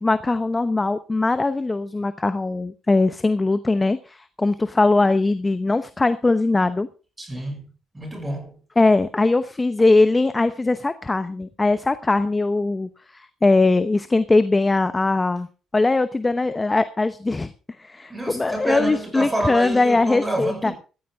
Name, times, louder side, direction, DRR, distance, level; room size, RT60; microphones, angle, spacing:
voice 1, 0.0-6.9 8.8-15.5 15.7-17.5 17.8-20.7, left 3 dB, 20° left, 0.8 m, -20 dB
voice 2, 7.2-7.7 7.9-8.5 18.1-20.7, right 1 dB, 15° right, 6.4 m, -28 dB
15.5 x 14.0 x 3.6 m
cardioid pair, 90°, 0 cm